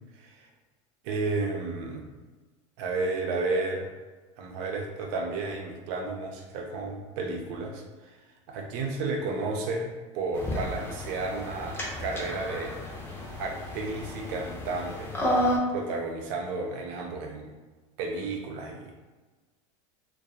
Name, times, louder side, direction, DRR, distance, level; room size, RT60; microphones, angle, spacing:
voice 1, 0.2-0.5 1.0-2.0 2.8-3.9 4.4-8.2 8.5-12.8 13.4-15.1 15.7-17.5 18.0-18.9, right 3 dB, 65° right, 1 dB, 0.6 m, -32 dB
sound 1, 10.4-15.6, left 1 dB, 15° left, 0.6 m, -32 dB
2.3 x 2.2 x 2.8 m, 1.3 s
hypercardioid pair, 100°, 17 cm